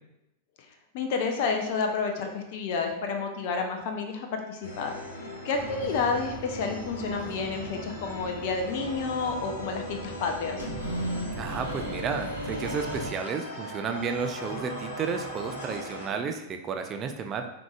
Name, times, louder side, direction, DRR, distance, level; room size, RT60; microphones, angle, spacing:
voice 1, 0.9-4.9 5.4-10.7, left 5 dB, 50° left, 4 dB, 0.5 m, -30 dB
sound 1, 4.6-16.1, equal, 75° left, 1.2 m, -39 dB
sound 2, 5.5-13.1, equal, 90° left, 1.0 m, -38 dB
voice 2, 11.3-17.5, right 5 dB, 30° right, 5 dB, 0.4 m, -32 dB
4.7 x 3.8 x 2.3 m, 0.90 s
figure-of-eight pair, 90°, 0 cm